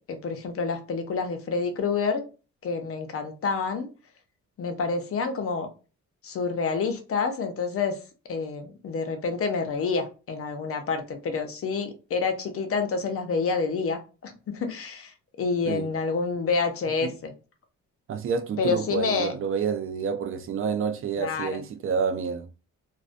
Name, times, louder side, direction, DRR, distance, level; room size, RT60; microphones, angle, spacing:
voice 1, 0.1-2.2 2.6-3.9 4.6-5.7 6.2-8.0 8.3-17.3 18.6-19.3 21.2-21.6, left 4 dB, 50° left, 0.6 m, -28 dB
voice 2, 18.1-22.5, right 6 dB, 45° right, 0.4 m, -28 dB
2.4 x 2.1 x 2.4 m
cardioid pair, 90°, 30 cm